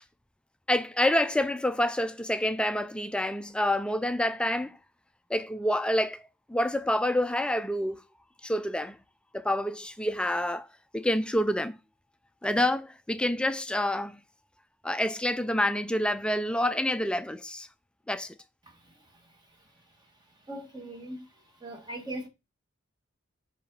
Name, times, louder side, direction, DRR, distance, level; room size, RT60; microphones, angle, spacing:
voice 1, 0.7-4.8 5.3-8.0 8.4-9.0 9.3-10.7 10.9-11.8 12.4-14.2 14.8-17.7 18.1-18.3, left 1 dB, 5° left, 0.4 m, -27 dB
voice 2, 20.5-21.3 21.6-22.3, right 1 dB, 20° right, 1.4 m, -39 dB
5.3 x 4.9 x 5.3 m
head